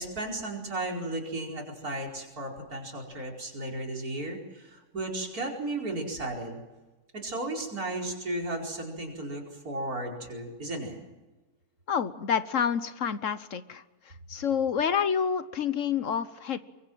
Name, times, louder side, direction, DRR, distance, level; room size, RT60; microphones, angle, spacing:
voice 1, 0.0-6.6 7.1-11.0, right 2 dB, 75° right, 0 dB, 5.3 m, -34 dB
voice 2, 11.9-13.8 14.3-16.6, left 7 dB, 60° left, 13 dB, 1.3 m, -28 dB
24.5 x 22.5 x 7.7 m, 1.2 s
omnidirectional pair, 1.6 m